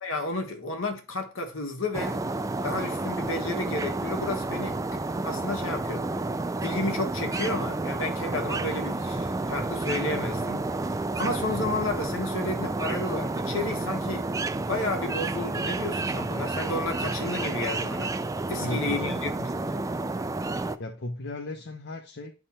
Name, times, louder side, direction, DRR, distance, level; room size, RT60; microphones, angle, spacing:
voice 1, 0.0-2.2 2.6-5.0 5.2-6.0 6.6-14.3 14.5-18.1 18.5-19.8, left 2 dB, 70° left, 1.6 m, -32 dB
sound 1, 1.9-20.8, right 2 dB, 15° right, 0.3 m, -30 dB
voice 2, 18.5-19.2 20.8-22.3, left 1 dB, 55° left, 0.7 m, -35 dB
9.9 x 3.6 x 4.3 m
head